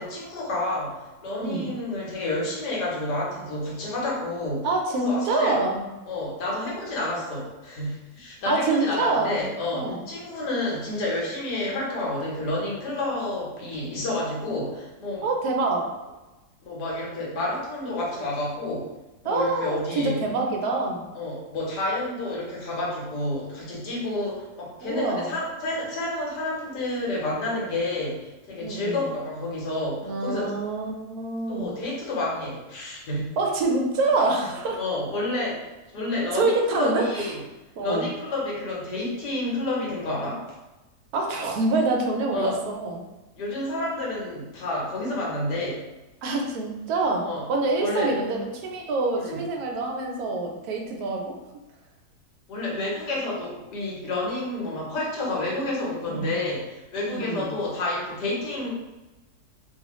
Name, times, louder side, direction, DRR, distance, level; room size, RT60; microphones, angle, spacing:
voice 1, 0.0-4.7 5.0-5.6 6.1-15.2 16.6-18.9 19.2-20.2 21.1-30.5 31.5-33.4 34.8-37.4 37.8-40.4 42.3-42.6 43.3-45.9 47.2-47.5 47.8-48.1 49.2-49.4 52.5-58.7, left 2 dB, 85° left, -4 dB, 1.5 m, -29 dB
voice 2, 4.6-5.8 8.5-9.4 9.7-10.0 15.2-15.8 19.2-21.0 24.8-25.3 28.6-29.0 30.0-31.7 33.4-34.8 36.3-37.3 37.8-38.1 41.1-43.0 46.2-47.2 47.5-51.2 56.1-56.3 57.1-57.5, right 3 dB, 70° right, 1 dB, 1.1 m, -26 dB
3.0 x 2.4 x 2.9 m, 1.1 s
omnidirectional pair, 1.7 m